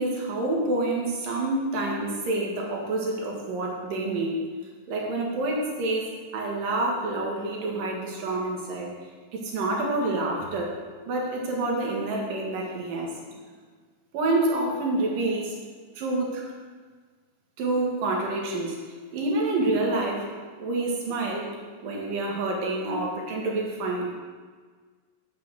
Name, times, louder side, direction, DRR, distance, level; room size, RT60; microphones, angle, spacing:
voice 1, 0.0-4.4 4.9-6.1 6.3-8.9 9.3-10.7 11.1-13.1 14.1-15.5 16.0-16.5 17.6-20.3 20.6-21.5 21.8-24.1, right 2 dB, 80° right, -1 dB, 3.4 m, -27 dB
8.6 x 5.8 x 7.7 m, 1.5 s
omnidirectional pair, 3.8 m